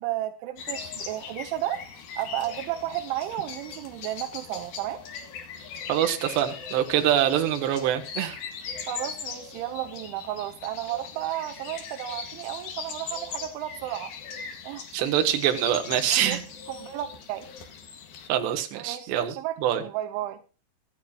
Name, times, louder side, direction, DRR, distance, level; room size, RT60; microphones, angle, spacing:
voice 1, 0.0-1.8 2.2-5.0 8.9-14.1 14.6-14.8 16.1-16.4 16.7-17.5 18.7-20.4, right 13 dB, 85° right, 6 dB, 3.2 m, -33 dB
sound 1, 0.6-18.3, left 6 dB, 60° left, 3.5 m, -40 dB
voice 2, 5.9-8.4 14.9-16.4 18.3-19.4 19.6-19.8, right 11 dB, 70° right, 6 dB, 3.4 m, -24 dB
25.0 x 10.0 x 2.4 m, 0.33 s
omnidirectional pair, 5.4 m